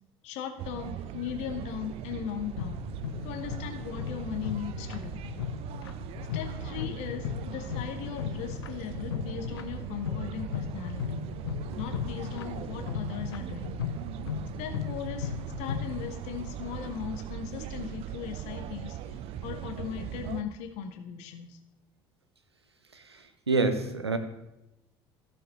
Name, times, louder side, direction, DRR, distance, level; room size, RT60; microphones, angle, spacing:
voice 1, 0.2-2.8 3.2-5.2 6.3-11.2 11.8-13.7 14.6-19.1 19.4-21.6, left 9 dB, 55° left, 6 dB, 1.1 m, -38 dB
sound 1, 0.6-20.4, right 11 dB, 45° right, 0.5 m, -39 dB
sound 2, 2.6-16.1, left 9 dB, 70° left, 0.4 m, -37 dB
voice 2, 22.9-24.2, right 3 dB, 85° right, 8 dB, 0.7 m, -28 dB
14.5 x 6.4 x 3.0 m, 0.89 s
figure-of-eight pair, 60°, 13 cm